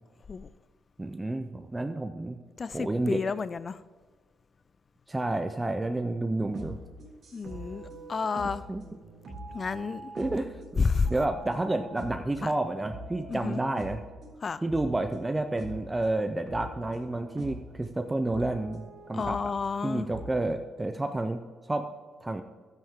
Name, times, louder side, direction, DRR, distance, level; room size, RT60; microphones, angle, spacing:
voice 1, 1.0-2.4 2.7-3.2 5.1-6.8 8.7-8.8 10.2-14.0 14.6-19.5 19.8-21.4 21.7-21.9 22.2-22.4, right 2 dB, 15° right, 0.5 m, -30 dB
voice 2, 2.6-3.8 7.3-8.6 9.5-10.1 10.8-11.1 12.4-12.5 13.3-13.6 14.4-14.6 19.1-20.1, left 5 dB, 40° left, 0.3 m, -30 dB
sound 1, 6.4-12.5 12.9-14.3 14.7-15.9 16.5-17.7 18.3-20.4, right 1 dB, 55° right, 3.3 m, -43 dB
12.5 x 8.9 x 3.7 m
cardioid pair, 90°, 0 cm